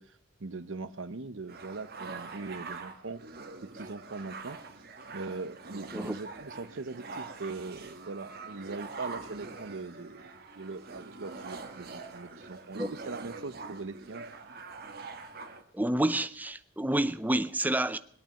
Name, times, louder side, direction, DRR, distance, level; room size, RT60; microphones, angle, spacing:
voice 1, 0.0-3.2 3.6-4.6 5.1-10.3 10.6-14.3, right 3 dB, 85° right, 0.8 m, -41 dB
sound 1, 1.5-15.6, right 3 dB, 55° right, 1.6 m, -44 dB
voice 2, 15.7-18.0, right 1 dB, 10° right, 0.6 m, -29 dB
21.0 x 9.1 x 7.0 m
head